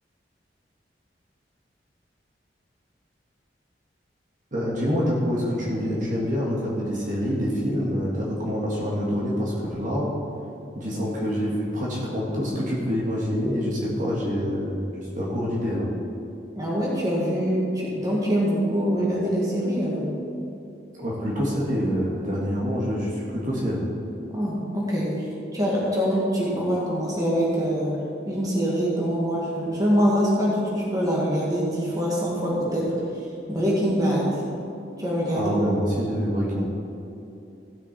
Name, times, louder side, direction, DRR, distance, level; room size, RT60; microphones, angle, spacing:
voice 1, 4.5-10.1 10.7-15.9 21.0-23.9 35.3-36.7, equal, 45° right, -5 dB, 1.9 m, -26 dB
voice 2, 16.6-20.1 24.3-28.0 28.3-32.9 33.5-34.4 35.0-35.5, equal, 20° right, -5 dB, 2.2 m, -24 dB
15.5 x 6.7 x 4.3 m, 2.8 s
head